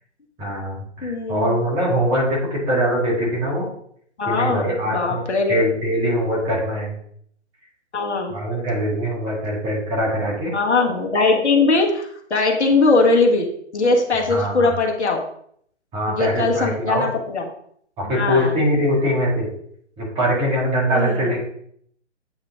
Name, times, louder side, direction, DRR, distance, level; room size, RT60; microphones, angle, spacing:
voice 1, 0.4-3.7 4.3-5.2 5.5-7.0 8.3-10.5 14.3-14.7 15.9-17.1 18.0-19.5 20.0-21.4, equal, 15° right, -4 dB, 1.8 m, -22 dB
voice 2, 1.0-1.6 4.2-5.5 7.9-8.3 10.5-15.2 16.1-17.4 18.0-18.5 20.9-21.3, left 3 dB, 70° left, 1 dB, 1.6 m, -20 dB
8.8 x 3.7 x 3.7 m, 0.66 s
figure-of-eight pair, 140°, 36 cm